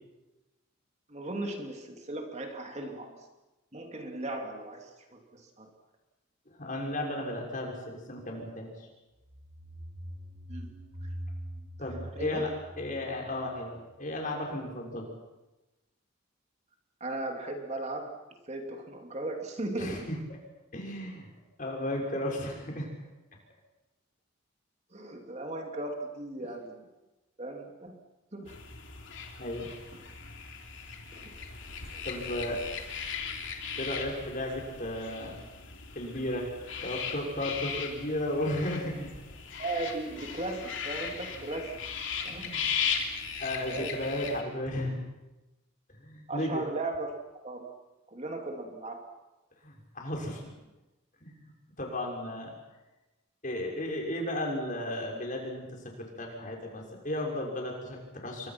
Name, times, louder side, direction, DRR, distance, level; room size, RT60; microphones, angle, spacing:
voice 1, 1.1-3.3 3.7-5.7 10.5-10.7 11.0-11.1 11.9-12.5 17.0-18.1 18.5-20.1 24.9-26.9 27.4-28.0 28.3-28.6 29.9-30.1 31.1-31.4 39.6-41.8 42.2-42.6 43.6-44.0 46.3-47.7 48.1-49.1, right 2 dB, 35° right, 3 dB, 2.8 m, -37 dB
voice 2, 6.5-8.9 11.8-12.5 12.8-15.1 19.8-20.2 20.7-21.3 21.6-22.9 29.4-29.7 32.0-32.6 33.8-35.4 35.9-36.5 36.8-39.1 42.2-42.6 43.4-45.0 45.9-46.6 49.6-50.5 51.2-51.4 51.8-52.5 53.4-58.5, left 1 dB, 40° left, 0 dB, 6.1 m, -34 dB
sound 1, 9.2-13.8, equal, 90° right, 5.0 m, -42 dB
sound 2, 28.5-44.4, left 6 dB, 65° left, 3.3 m, -38 dB
29.5 x 24.0 x 6.0 m, 1.1 s
head